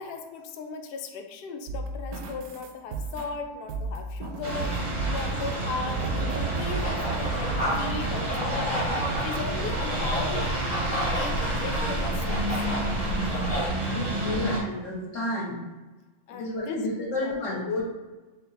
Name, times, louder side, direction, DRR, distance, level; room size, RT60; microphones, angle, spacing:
voice 1, 0.0-10.5 10.9-12.6 16.3-17.6, left 4 dB, 85° left, 5 dB, 0.5 m, -37 dB
sound 1, 1.7-5.5 5.9-6.4 6.7-7.6 8.0-8.1, right 3 dB, 85° right, 1.1 m, -35 dB
sound 2, 4.4-14.6, right 2 dB, 45° right, 0.6 m, -30 dB
sound 3, 6.6-13.7, equal, 25° left, 1.1 m, -31 dB
voice 2, 13.8-15.6 16.3-17.8, left 2 dB, 60° left, -4 dB, 1.4 m, -31 dB
4.3 x 2.1 x 4.0 m, 1.2 s
omnidirectional pair, 1.5 m